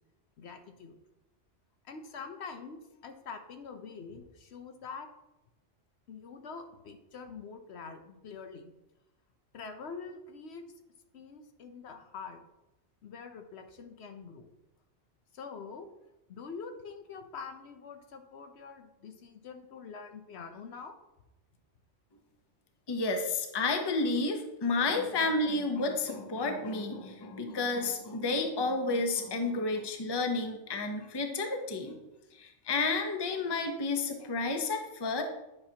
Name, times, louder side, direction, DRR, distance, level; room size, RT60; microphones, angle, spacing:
voice 1, 0.4-1.0 1.8-5.1 6.1-8.7 9.5-10.6 11.1-12.4 13.0-14.5 15.3-15.9 16.3-20.9, left 5 dB, 65° left, 6 dB, 0.9 m, -45 dB
voice 2, 22.9-31.9 32.3-35.2, left 3 dB, 25° left, 4 dB, 0.7 m, -31 dB
9.7 x 5.7 x 2.8 m, 0.97 s
omnidirectional pair, 1.2 m